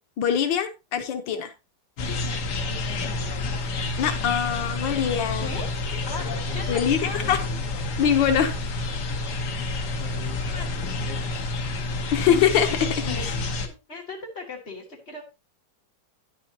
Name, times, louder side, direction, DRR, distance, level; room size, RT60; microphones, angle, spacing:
voice 1, 0.2-1.5 2.1-2.2 4.0-5.5 6.7-7.4 8.0-8.6 12.1-12.8 13.2-13.3, left 8 dB, 90° left, 7 dB, 1.6 m, -23 dB
sound 1, 2.0-13.7, left 3 dB, 65° left, 1.7 m, -29 dB
voice 2, 2.6-3.2 5.3-5.7 6.0-7.4 10.4-10.8 13.0-13.3 13.6-15.2, left 3 dB, 35° left, 0 dB, 2.6 m, -38 dB
9.7 x 9.0 x 2.8 m, 0.26 s
omnidirectional pair, 2.0 m